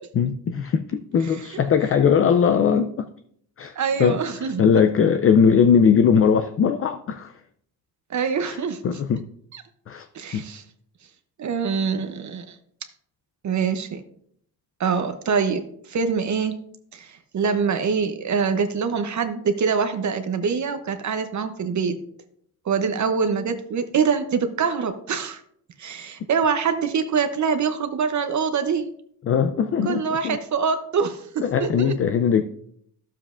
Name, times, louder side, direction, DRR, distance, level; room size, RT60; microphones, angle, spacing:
voice 1, 0.1-3.1 3.6-7.3 8.4-8.6 8.8-9.2 9.9-10.1 10.3-10.4 29.2-30.4 31.4-32.4, left 7 dB, 35° left, 9 dB, 0.4 m, -20 dB
voice 2, 3.8-4.6 8.1-8.8 9.5-9.6 10.1-10.6 11.4-12.5 13.4-14.0 14.8-16.6 16.9-22.0 22.7-25.4 25.8-28.9 29.8-32.0, right 6 dB, 45° right, 9 dB, 0.7 m, -24 dB
11.5 x 7.4 x 2.5 m, 0.68 s
cardioid pair, 100°, 39 cm